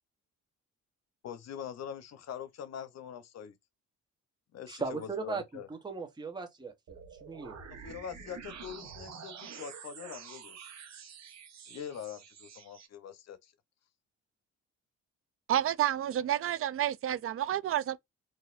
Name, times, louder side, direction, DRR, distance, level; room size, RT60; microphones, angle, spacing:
voice 1, 1.2-3.5 4.5-5.7 7.7-10.7 11.7-13.5, left 8 dB, 60° left, 0.7 m, -43 dB
voice 2, 4.7-5.4 5.7-7.6, right 4 dB, 15° right, 0.9 m, -38 dB
sound 1, 6.9-12.9, right 6 dB, 65° right, 1.1 m, -48 dB
voice 3, 15.5-18.0, right 11 dB, 50° right, 0.4 m, -30 dB
3.9 x 2.6 x 2.5 m
cardioid pair, 90°, 30 cm